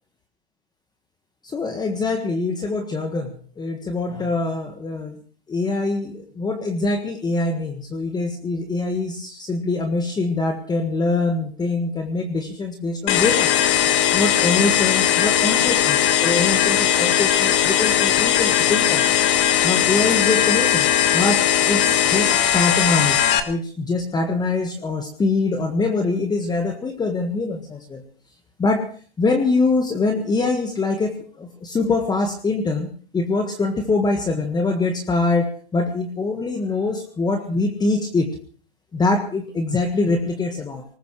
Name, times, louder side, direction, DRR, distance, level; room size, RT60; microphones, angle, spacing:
voice 1, 1.4-5.2 5.5-13.5 14.1-19.1 19.6-20.9 21.1-28.0 28.6-28.9 29.2-32.9 33.1-38.3 38.9-40.8, left 3 dB, 15° left, 5 dB, 1.5 m, -24 dB
sound 1, 13.1-23.4, left 11 dB, 40° left, 1.6 m, -19 dB
19.5 x 19.0 x 3.2 m, 0.43 s
hypercardioid pair, 115°, 30 cm